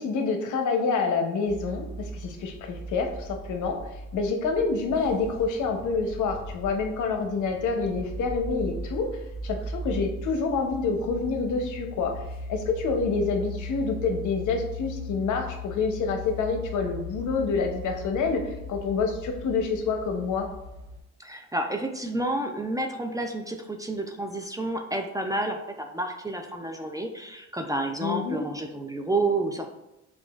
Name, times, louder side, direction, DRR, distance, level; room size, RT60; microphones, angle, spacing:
voice 1, 0.0-3.8 4.1-9.1 9.4-12.2 12.5-20.5 28.0-28.5, left 4 dB, 75° left, 4 dB, 0.7 m, -27 dB
sound 1, 1.5-21.0, left 1 dB, 50° right, 1.1 m, -38 dB
voice 2, 21.2-29.7, right 2 dB, 10° right, 3 dB, 0.3 m, -30 dB
6.0 x 2.4 x 2.3 m, 0.91 s
cardioid pair, 90°, 30 cm